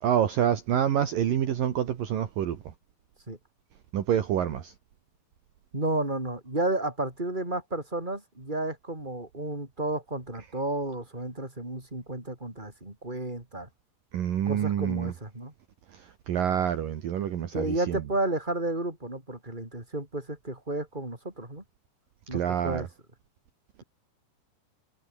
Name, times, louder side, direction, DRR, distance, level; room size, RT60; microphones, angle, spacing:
voice 1, 0.0-2.6 3.9-4.7 14.1-15.1 16.3-18.0 22.3-22.9, right 10 dB, 60° right, 3.4 m, -27 dB
voice 2, 5.7-13.7 14.4-15.5 17.5-21.6 22.3-22.9, right 2 dB, 10° right, 6.6 m, -32 dB
omnidirectional pair, 4.7 m